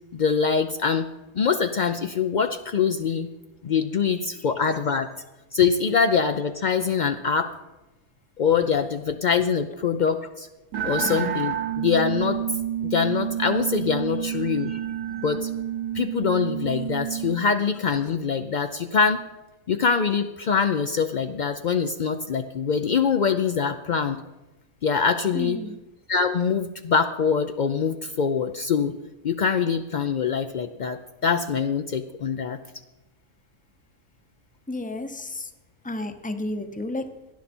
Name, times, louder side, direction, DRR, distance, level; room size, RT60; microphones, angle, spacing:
voice 1, 0.1-1.1 1.3-3.3 3.6-5.1 5.5-7.5 8.4-10.5 10.8-12.4 12.8-14.8 15.2-15.5 15.9-19.2 19.7-24.2 24.8-25.6 26.1-28.9 29.2-32.6, left 6 dB, 85° left, 7 dB, 0.4 m, -24 dB
sound 1, 10.7-17.4, right 10 dB, 70° right, 1.3 m, -29 dB
voice 2, 25.3-25.8 34.7-35.5 35.8-37.1, left 2 dB, 10° left, 8 dB, 0.5 m, -32 dB
17.5 x 11.5 x 4.3 m, 1.1 s
omnidirectional pair, 1.5 m